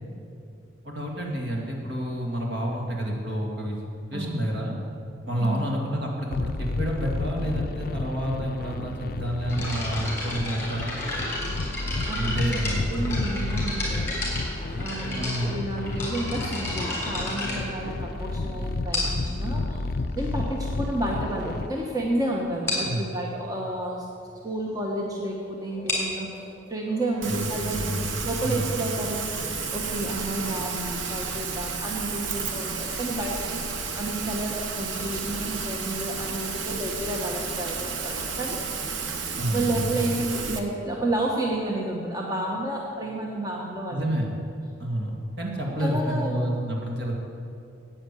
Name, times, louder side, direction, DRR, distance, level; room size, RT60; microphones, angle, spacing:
voice 1, 0.8-3.8 4.1-4.8 5.3-10.9 12.1-13.0 15.1-15.6 18.6-18.7 22.8-23.0 27.3-28.8 39.4-40.0 43.9-44.4 44.8-47.2, equal, 55° right, -1 dB, 2.2 m, -29 dB
voice 2, 5.4-5.7 12.1-14.2 14.8-19.8 20.1-24.1 24.4-26.3 26.7-27.9 28.2-29.2 29.7-38.7 39.5-44.2 45.8-46.5, right 1 dB, 20° right, -2 dB, 1.1 m, -31 dB
sound 1, 6.3-21.7, left 2 dB, 50° left, 0.4 m, -31 dB
sound 2, 9.5-18.3 18.9-19.4 20.2-20.3 20.9-21.0 21.3-21.5 21.8-21.9 22.2-22.3 22.7-23.0 25.6-29.1, left 2 dB, 15° left, 3.8 m, -33 dB
Rain, 27.2-40.6, right 5 dB, 80° right, 1.0 m, -32 dB
10.5 x 8.7 x 8.3 m, 2.5 s
head